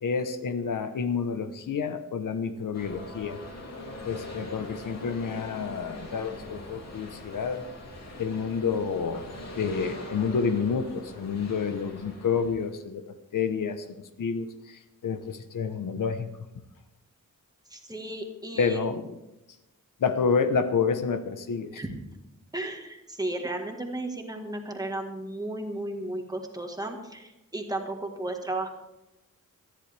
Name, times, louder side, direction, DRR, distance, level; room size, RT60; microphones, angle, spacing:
voice 1, 0.0-3.4 4.0-7.6 8.2-9.2 9.5-13.0 13.3-16.3 18.6-19.2 20.0-21.8, left 5 dB, 75° left, 9 dB, 1.1 m, -29 dB
sound 1, 2.7-12.8, left 1 dB, 55° left, 2.8 m, -42 dB
voice 2, 17.7-18.9 21.8-21.9 22.5-28.7, right 1 dB, 10° right, 2 dB, 1.6 m, -34 dB
19.0 x 13.5 x 3.5 m, 0.97 s
wide cardioid pair, 180°, 32 cm